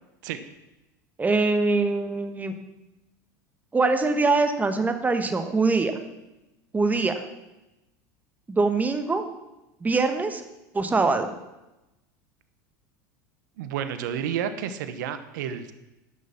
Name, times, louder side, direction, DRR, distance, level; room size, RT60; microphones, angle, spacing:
voice 1, 1.2-2.5 3.7-5.9 6.7-7.1 8.5-9.2 9.8-10.4 10.7-11.3, right 3 dB, 15° right, 7 dB, 1.3 m, -23 dB
voice 2, 13.6-15.7, right 9 dB, 75° right, 11 dB, 1.0 m, -30 dB
10.5 x 6.3 x 7.2 m, 0.97 s
hypercardioid pair, 100°, 10 cm